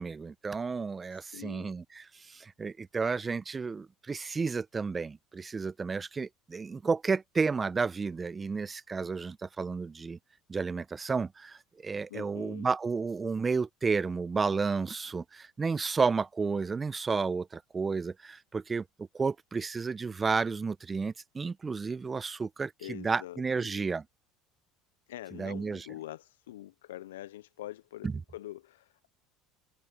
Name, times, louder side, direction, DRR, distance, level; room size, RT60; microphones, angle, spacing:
voice 1, 0.0-10.2 10.5-24.0 25.4-25.9 28.0-28.1, right 4 dB, 25° right, 0.9 m, -32 dB
voice 2, 1.1-1.8 12.1-12.7 22.8-23.9 25.1-29.1, left 14 dB, 80° left, 0.6 m, -45 dB
hypercardioid pair, 75°, 0 cm